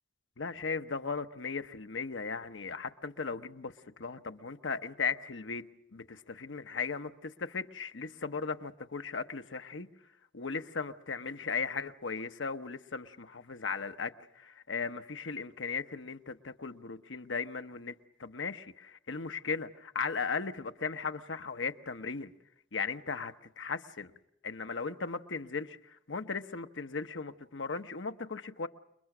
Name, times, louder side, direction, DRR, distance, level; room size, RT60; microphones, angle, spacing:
voice 1, 0.4-5.6 5.9-9.9 10.3-17.9 18.2-22.3 22.7-24.1 24.4-28.7, left 5 dB, 85° left, 1.0 m, -37 dB
29.0 x 22.0 x 6.1 m
head